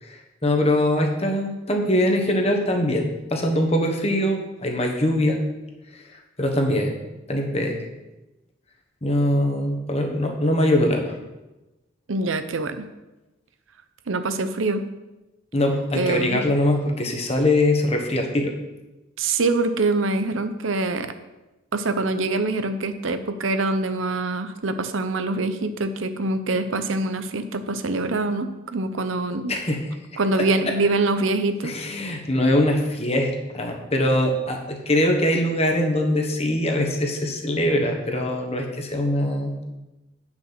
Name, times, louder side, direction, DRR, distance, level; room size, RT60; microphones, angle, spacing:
voice 1, 0.0-5.4 5.9-6.0 6.4-6.9 7.3-7.8 9.0-11.1 15.5-18.5 29.5-29.8 30.1-30.2 30.6-30.7 31.6-39.6, left 1 dB, 30° left, 2 dB, 1.3 m, -22 dB
voice 2, 12.1-12.9 14.1-14.8 15.9-16.4 19.2-21.1 21.7-29.5 30.2-31.7, right 3 dB, 85° right, 9 dB, 0.7 m, -24 dB
8.9 x 6.1 x 6.0 m, 1.0 s
head